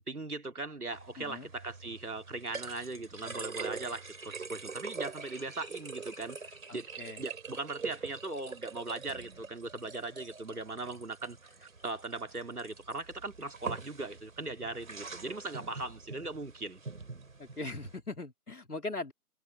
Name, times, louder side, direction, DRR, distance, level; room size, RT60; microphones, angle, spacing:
voice 1, 0.0-6.9 7.2-16.8, right 2 dB, 75° right, 3.3 m, -39 dB
sound 1, 0.9-18.0, right 4 dB, 60° right, 4.6 m, -44 dB
voice 2, 1.2-1.5 6.7-7.2 17.4-19.1, left 2 dB, 75° left, 4.0 m, -40 dB
figure-of-eight pair, 145°, 45 cm